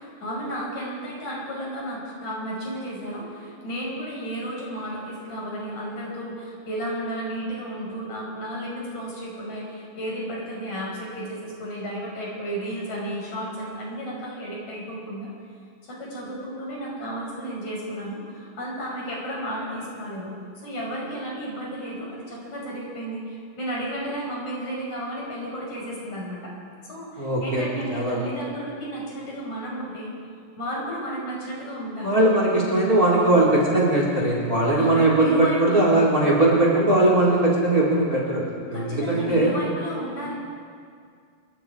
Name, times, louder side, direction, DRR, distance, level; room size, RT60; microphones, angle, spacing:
voice 1, 0.0-15.3 15.8-26.5 26.8-30.1 30.6-32.2 34.7-35.8 38.7-40.3, right 1 dB, 55° left, -3 dB, 6.9 m, -33 dB
voice 2, 27.2-28.2 32.0-39.5, right 1 dB, 25° right, -3 dB, 4.1 m, -20 dB
28.0 x 21.5 x 4.9 m, 2.1 s
omnidirectional pair, 4.0 m